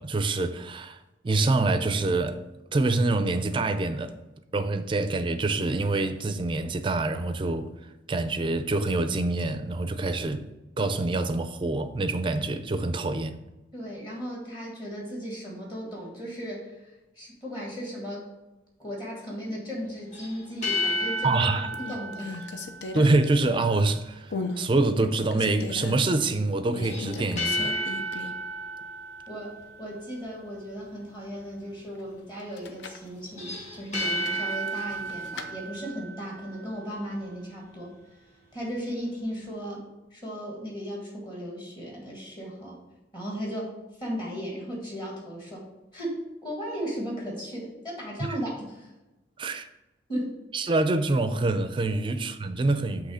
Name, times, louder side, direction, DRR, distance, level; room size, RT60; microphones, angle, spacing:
voice 1, 0.0-2.4 2.7-4.1 4.5-10.4 10.8-13.4 21.2-21.7 22.9-27.8 48.2-48.4 49.4-49.7 50.5-53.1, right 2 dB, 30° right, 0.4 m, -26 dB
voice 2, 13.7-16.9 17.1-18.3 18.8-22.5 29.3-37.9 38.5-39.8 40.1-42.8 43.1-43.7 44.0-45.6 45.9-48.9 50.1-50.4, equal, 25° left, 1.7 m, -36 dB
sound 1, 20.1-23.5 26.8-30.1 33.3-36.8, equal, 40° left, 2.1 m, -33 dB
sound 2, 20.9-21.3 21.7-23.9 24.3-24.6 25.0-26.0 26.7-28.5 28.8-28.9 32.4-33.1 34.0-35.5, left 3 dB, 75° left, 0.6 m, -37 dB
7.8 x 3.1 x 4.9 m
head